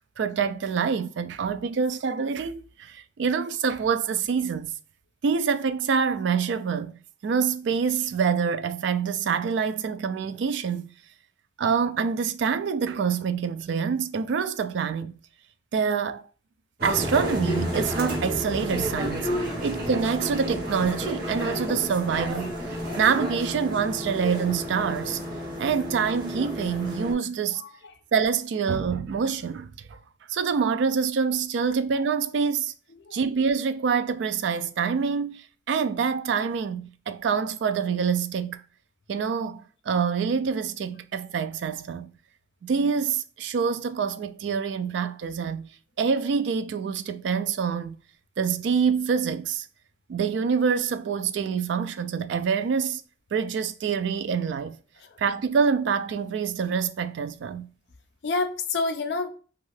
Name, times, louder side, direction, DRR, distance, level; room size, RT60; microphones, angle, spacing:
voice 1, 0.2-4.7 5.2-6.9 7.2-10.9 11.6-15.1 15.7-16.2 16.8-22.5 23.0-25.2 25.6-27.6 28.1-30.0 30.3-32.7 33.1-38.6 39.1-42.1 42.6-45.7 46.0-48.0 48.4-49.7 50.1-53.0 53.3-54.8 55.2-57.7, right 6 dB, 70° right, 0.3 m, -26 dB
sound 1, 16.8-27.1, equal, 50° right, 1.0 m, -31 dB
voice 2, 58.2-59.3, left 3 dB, 60° left, 0.5 m, -28 dB
2.7 x 2.4 x 3.1 m
head